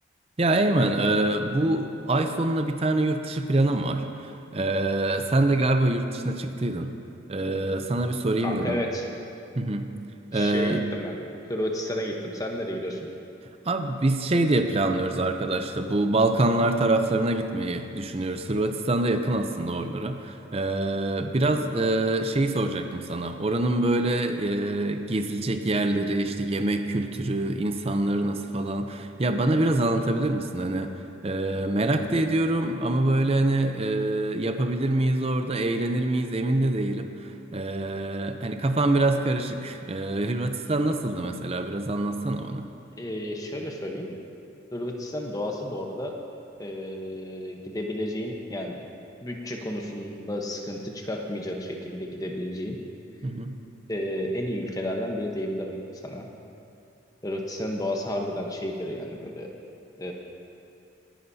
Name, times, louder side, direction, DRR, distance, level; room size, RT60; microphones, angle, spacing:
voice 1, 0.4-6.9 7.3-8.8 9.6-9.9 10.3-10.8 13.6-30.9 31.2-42.7 53.2-53.5, right 2 dB, 30° right, 7 dB, 0.6 m, -25 dB
voice 2, 8.4-9.1 10.3-11.2 11.5-13.0 43.0-44.1 44.7-46.1 46.6-48.8 49.2-52.8 53.9-55.8 56.0-56.3 57.2-59.5 60.0-60.1, left 1 dB, 20° left, 1 dB, 0.9 m, -32 dB
21.0 x 10.0 x 2.8 m, 2.7 s
head